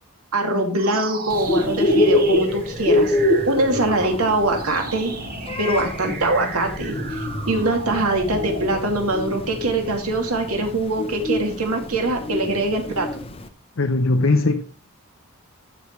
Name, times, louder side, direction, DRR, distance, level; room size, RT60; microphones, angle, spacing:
voice 1, 0.3-3.2 3.5-5.1 5.6-13.1, right 2 dB, 80° right, 2.4 m, -23 dB
sound 1, 0.7-10.2, right 2 dB, 40° right, 1.5 m, -33 dB
Bird, 1.3-13.4, left 1 dB, 25° left, 0.8 m, -24 dB
voice 2, 13.8-14.6, left 2 dB, 60° left, 0.7 m, -19 dB
15.0 x 6.4 x 3.1 m
head